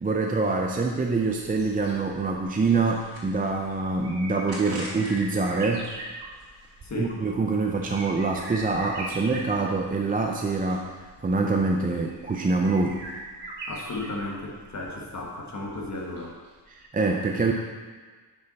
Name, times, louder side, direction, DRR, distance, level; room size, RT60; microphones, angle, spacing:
voice 1, 0.0-5.9 7.0-10.9 11.2-13.0 16.7-17.5, right 3 dB, 20° right, 1 dB, 0.4 m, -25 dB
sound 1, 0.6-16.5 16.8-16.9, right 2 dB, 85° right, 2.0 m, -42 dB
sound 2, 3.0-3.8 4.5-5.4 5.7-6.9, right 1 dB, 60° right, 1.9 m, -42 dB
voice 2, 6.8-7.1 13.7-16.3 17.3-17.5, left 2 dB, 45° left, -1 dB, 1.3 m, -34 dB
10.0 x 5.6 x 4.1 m, 1.4 s
wide cardioid pair, 170°, 41 cm